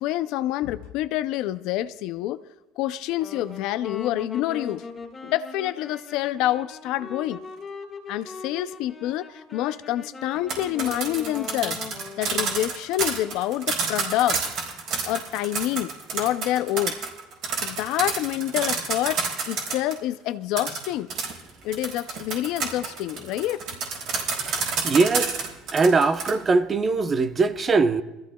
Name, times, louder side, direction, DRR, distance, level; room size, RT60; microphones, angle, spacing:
voice 1, 0.0-2.4 2.8-4.8 5.2-7.4 8.1-11.8 12.2-14.4 15.0-17.0 17.6-21.1 21.6-23.6, left 14 dB, 70° left, 0.4 m, -27 dB
Wind instrument woodwind instrument, 3.2-12.7, left 4 dB, 25° left, 1.7 m, -40 dB
sound 1, 10.3-20.0 20.6-26.3, right 4 dB, 60° right, 4.3 m, -29 dB
voice 2, 24.5-25.3 25.7-28.0, right 4 dB, 30° right, 0.7 m, -21 dB
23.0 x 14.5 x 2.3 m
cardioid pair, 120°, 0 cm